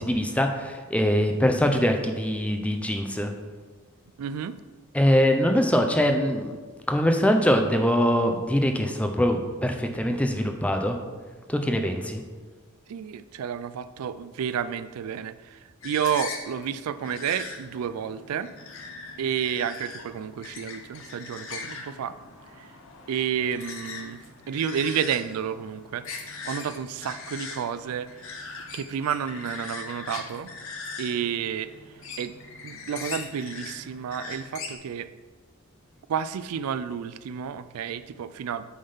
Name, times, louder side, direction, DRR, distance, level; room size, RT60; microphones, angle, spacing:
voice 1, 0.0-3.3 4.9-6.6 6.9-11.0 11.5-12.2, equal, 5° left, 4 dB, 0.5 m, -23 dB
voice 2, 4.2-4.6 12.9-18.5 19.2-22.2 22.6-22.7 23.1-24.2 24.5-28.1 28.7-30.5 31.0-31.7 32.2-32.3 32.6-35.1 36.1-38.7, right 8 dB, 85° right, 14 dB, 0.3 m, -30 dB
sound 1, 15.8-34.7, left 4 dB, 60° left, 0.9 m, -40 dB
8.6 x 3.6 x 5.5 m, 1.4 s
head